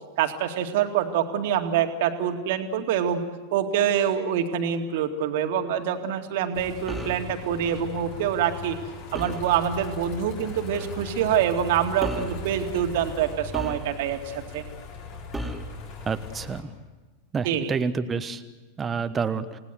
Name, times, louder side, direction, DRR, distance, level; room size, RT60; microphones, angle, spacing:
voice 1, 0.2-3.2 3.5-8.8 9.1-14.6 17.4-17.7, right 9 dB, 50° right, 6 dB, 2.3 m, -25 dB
sound 1, 6.5-16.6, left 3 dB, 45° left, 4.4 m, -39 dB
sound 2, 6.9-7.3 9.1-9.5 10.7-11.0 12.0-12.4 13.5-14.2 15.3-15.8, right 1 dB, ahead, 2.9 m, -34 dB
voice 2, 16.1-16.6 17.3-18.4 18.8-19.6, right 5 dB, 20° right, 10 dB, 1.2 m, -28 dB
29.0 x 18.5 x 8.1 m, 1.2 s
figure-of-eight pair, 90°, 0 cm